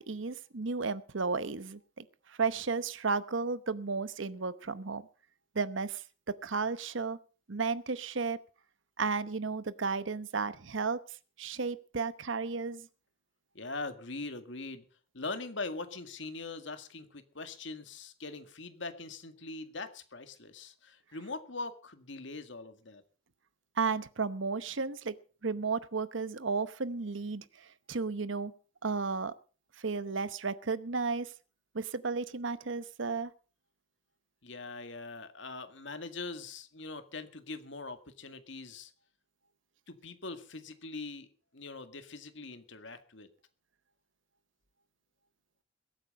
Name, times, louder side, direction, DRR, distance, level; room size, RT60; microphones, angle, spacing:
voice 1, 0.0-5.1 5.5-7.2 7.5-8.4 9.0-11.0 11.4-12.9 23.8-25.2 25.4-28.5 28.8-29.3 29.8-31.3 31.7-33.3, right 4 dB, 75° right, 15 dB, 0.9 m, -33 dB
voice 2, 13.5-14.9 15.1-23.0 34.4-38.9 39.9-41.3 41.5-43.3, left 3 dB, 70° left, 9 dB, 2.0 m, -42 dB
22.0 x 8.9 x 5.4 m, 0.38 s
head